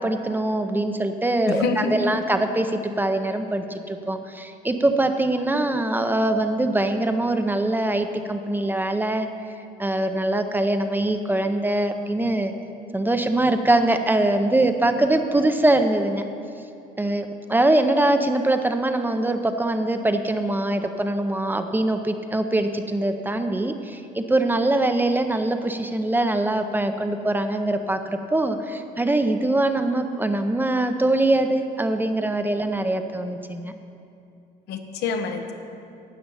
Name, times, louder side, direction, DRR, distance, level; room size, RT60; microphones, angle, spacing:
voice 1, 0.0-1.6 1.9-9.3 9.8-12.5 12.9-16.2 17.0-33.7, right 1 dB, 10° right, 7 dB, 0.6 m, -23 dB
voice 2, 1.5-2.1 34.7-35.5, left 4 dB, 80° left, 5 dB, 1.1 m, -26 dB
12.5 x 8.5 x 5.6 m, 2.6 s
cardioid pair, 110°, 17 cm